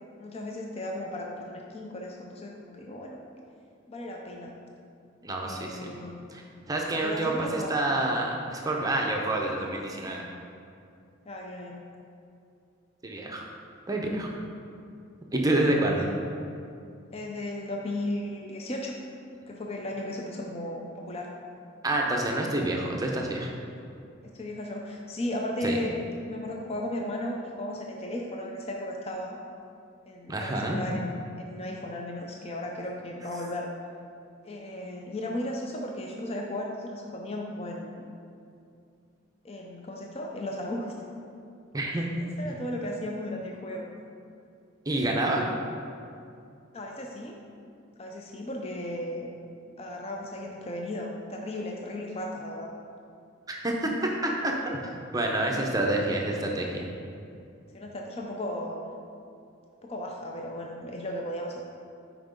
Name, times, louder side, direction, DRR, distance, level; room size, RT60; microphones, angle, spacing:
voice 1, 0.2-3.2 3.9-4.5 5.4-6.2 7.0-7.7 11.3-11.8 17.1-19.0 19.5-21.3 24.2-25.9 26.3-29.4 30.1-33.7 34.4-38.1 39.4-41.1 41.9-43.9 46.7-47.4 48.0-49.3 49.8-52.7 55.4-55.8 57.7-58.9 59.8-61.6, left 1 dB, 30° left, 0 dB, 0.5 m, -35 dB
voice 2, 5.2-6.0 6.3-6.4 6.7-10.2 13.0-13.4 13.9-14.3 15.3-16.1 21.8-23.5 25.6-25.8 30.3-30.8 41.7-42.0 44.9-45.6 53.5-54.8 55.1-56.9, right 1 dB, 20° right, 0 dB, 0.6 m, -28 dB
5.9 x 4.7 x 5.1 m, 2.5 s
head